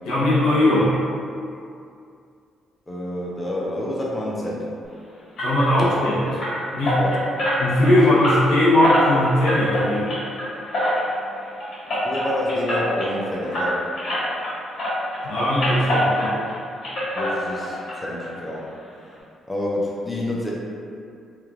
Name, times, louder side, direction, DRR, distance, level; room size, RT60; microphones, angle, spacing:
voice 1, 0.0-0.9 5.4-6.2 6.7-7.0 7.6-10.1 15.2-16.4, left 1 dB, 90° left, -9 dB, 0.8 m, -19 dB
voice 2, 2.9-4.7 7.0-7.2 12.0-13.8 17.1-18.6 19.5-20.5, left 1 dB, 20° left, -5 dB, 0.5 m, -28 dB
sound 1, 5.4-14.5 14.8-16.6 16.8-17.9 18.2-18.3 18.8-18.9 19.2-19.3, equal, 65° left, 1.4 m, -25 dB
3.1 x 2.2 x 2.4 m, 2.4 s
cardioid pair, 90°, 0 cm